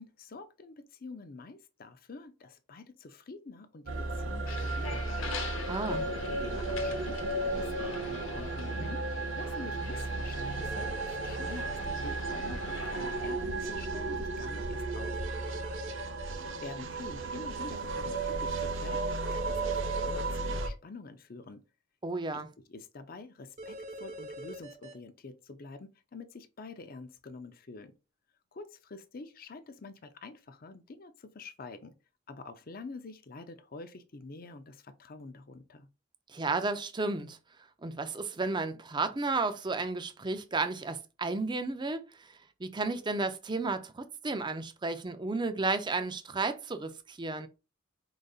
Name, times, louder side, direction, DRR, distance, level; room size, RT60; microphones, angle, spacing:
voice 1, 0.0-5.3 5.9-10.9 11.2-15.2 16.3-21.6 22.3-22.4 22.7-27.9 28.5-31.9 32.3-35.9, left 3 dB, 45° left, 0.6 m, -47 dB
sound 1, 3.9-20.7, right 2 dB, 70° right, 0.8 m, -34 dB
sound 2, 4.5-13.3, left 4 dB, 70° left, 1.0 m, -44 dB
voice 2, 5.7-6.0 22.0-22.5 36.3-37.4 37.8-42.0 42.6-47.5, right 3 dB, 20° right, 0.5 m, -32 dB
sound 3, 10.6-12.0 14.9-16.3 19.3-20.6 23.6-24.9, equal, 40° right, 1.2 m, -43 dB
5.1 x 3.9 x 2.4 m
head